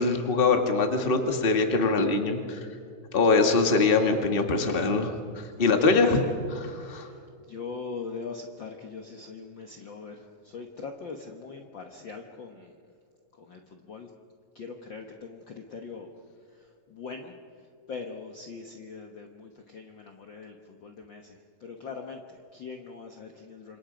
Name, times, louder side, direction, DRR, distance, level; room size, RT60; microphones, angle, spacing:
voice 1, 0.0-2.7 3.1-6.2 6.5-7.1, left 3 dB, 20° left, 4 dB, 1.7 m, -23 dB
voice 2, 5.5-6.3 6.6-7.2 7.4-12.7 13.4-14.1 14.6-16.1 16.9-17.3 17.9-23.8, left 4 dB, 50° left, 3 dB, 1.7 m, -42 dB
29.0 x 27.0 x 5.2 m, 2.2 s
omnidirectional pair, 3.4 m